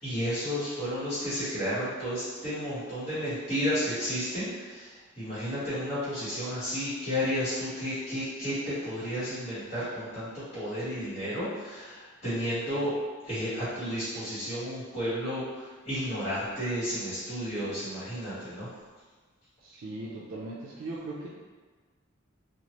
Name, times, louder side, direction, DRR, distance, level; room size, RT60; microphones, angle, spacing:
voice 1, 0.0-12.9 13.2-18.7, equal, 30° left, -17 dB, 1.2 m, -32 dB
voice 2, 19.6-21.3, right 2 dB, 80° right, -5 dB, 0.4 m, -39 dB
2.9 x 2.4 x 3.0 m, 1.4 s
head